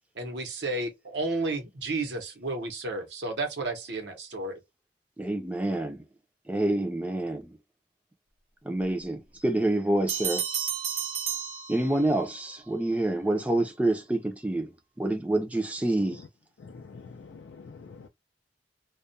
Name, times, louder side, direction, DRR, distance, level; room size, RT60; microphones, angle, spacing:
voice 1, 0.2-4.6, right 2 dB, 75° right, 0.8 m, -32 dB
voice 2, 5.2-6.0 6.5-7.6 8.6-10.4 11.7-16.2, right 1 dB, 10° right, 0.5 m, -27 dB
sound 1, 10.1-12.3, right 8 dB, 40° right, 0.7 m, -32 dB
voice 3, 16.6-18.1, left 4 dB, 80° left, 0.4 m, -46 dB
2.3 x 2.2 x 2.6 m
head